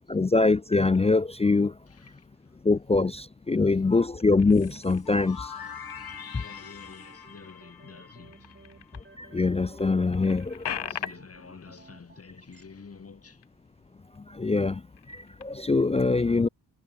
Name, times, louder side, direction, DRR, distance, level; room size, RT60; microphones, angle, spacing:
voice 1, 0.1-1.7 2.6-5.5 9.2-10.6 14.3-14.8 15.1-16.5, left 3 dB, 15° left, 0.3 m, -23 dB
sound 1, 0.7-1.3 1.8-2.5 2.9-3.6 3.9-9.1 9.5-9.6 9.8-13.8 14.1-14.3 14.8-15.8, left 9 dB, 75° left, 3.1 m, -43 dB
voice 2, 1.9-3.2 3.5-4.1 4.6-4.8 5.3-8.6 10.6-13.5 16.1-16.2, left 5 dB, 35° left, 4.2 m, -50 dB
sound 2, 4.5-9.3, left 7 dB, 60° left, 5.1 m, -44 dB
sound 3, 4.6-12.6, right 3 dB, 25° right, 4.6 m, -55 dB
wide cardioid pair, 150°, 40 cm